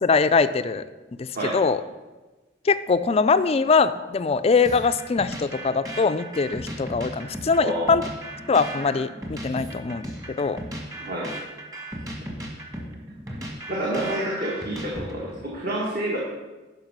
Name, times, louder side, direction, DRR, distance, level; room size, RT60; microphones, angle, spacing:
voice 1, 0.0-0.8 1.2-1.8 2.7-8.0 8.5-10.0 10.4-10.6, left 4 dB, 30° left, 12 dB, 0.4 m, -22 dB
sound 1, 4.6-15.4, right 1 dB, 20° right, 1.6 m, -36 dB
voice 2, 7.6-8.0 9.5-9.6 10.8-11.3 12.8-13.0 13.7-16.2, right 1 dB, 50° right, -5 dB, 1.8 m, -29 dB
10.5 x 5.5 x 6.0 m, 1.2 s
head